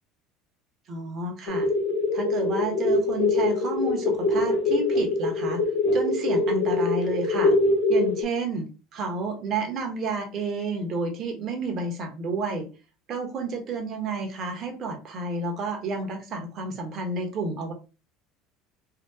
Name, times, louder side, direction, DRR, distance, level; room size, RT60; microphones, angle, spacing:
voice 1, 0.9-1.7 2.1-5.6 5.9-7.5 7.9-8.7 8.9-12.7 13.1-17.7, right 3 dB, 45° right, 3 dB, 1.1 m, -30 dB
sound 1, 1.5-8.2, left 2 dB, 65° left, 0.9 m, -23 dB
2.8 x 2.4 x 3.5 m, 0.33 s
supercardioid pair, 105°, 0 cm